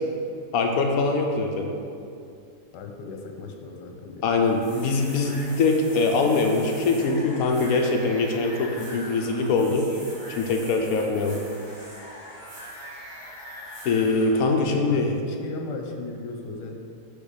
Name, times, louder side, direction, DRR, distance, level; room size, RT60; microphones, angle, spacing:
voice 1, 0.5-1.7 4.2-9.9 10.4-11.4 13.8-15.1, left 3 dB, 70° left, 2 dB, 1.0 m, -23 dB
voice 2, 2.7-4.3 14.7-16.8, left 3 dB, 90° left, 3 dB, 1.3 m, -37 dB
sound 1, 4.4-14.3, equal, 55° right, 2.1 m, -42 dB
5.2 x 4.4 x 4.9 m, 2.5 s
omnidirectional pair, 1.8 m